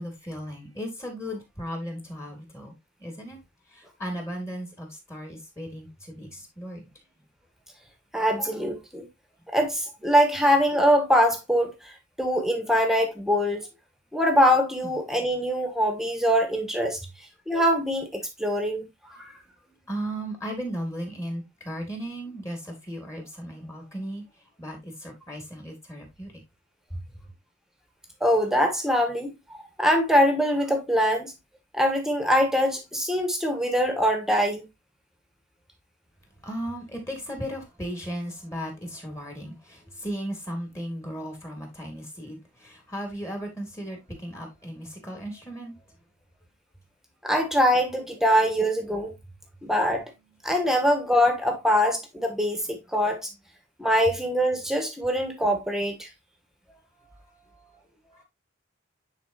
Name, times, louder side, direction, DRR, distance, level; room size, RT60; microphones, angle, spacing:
voice 1, 0.0-2.7 3.0-3.4 3.7-6.9 14.8-14.9 19.6-26.3 26.9-27.3 36.4-45.7 56.7-58.2, equal, 15° left, 2.4 m, -36 dB
voice 2, 8.1-9.1 9.5-11.9 12.2-13.6 14.1-17.0 17.5-18.8 19.1-19.2 28.2-31.3 31.7-34.7 47.2-49.1 49.6-50.0 50.4-53.3 53.8-56.1, equal, ahead, 1.5 m, -23 dB
9.9 x 4.4 x 2.7 m
head